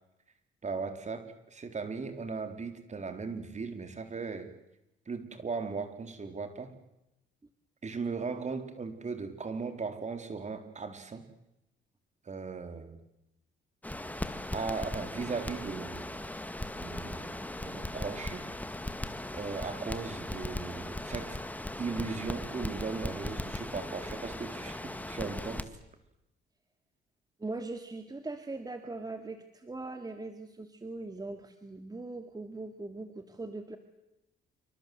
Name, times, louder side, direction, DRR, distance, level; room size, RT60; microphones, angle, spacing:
voice 1, 0.6-4.5 5.1-6.7 7.8-11.2 12.3-13.0 14.5-16.1 16.8-18.5 19.3-21.4 21.8-25.7, right 4 dB, 35° right, 8 dB, 4.0 m, -37 dB
Crackle, 13.8-25.6, left 1 dB, 10° left, 2.2 m, -38 dB
voice 2, 27.4-33.8, right 2 dB, 20° right, 7 dB, 2.3 m, -40 dB
27.5 x 25.0 x 8.0 m, 0.90 s
cardioid pair, 90°, 20 cm